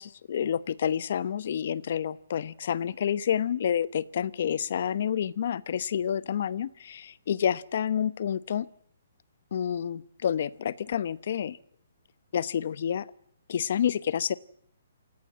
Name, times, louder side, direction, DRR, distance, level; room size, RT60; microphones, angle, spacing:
voice 1, 0.0-8.7 9.5-11.6 12.3-13.1 13.5-14.4, left 9 dB, 50° left, 18 dB, 1.0 m, -29 dB
28.0 x 17.0 x 7.6 m, 0.69 s
hypercardioid pair, 165°, 0 cm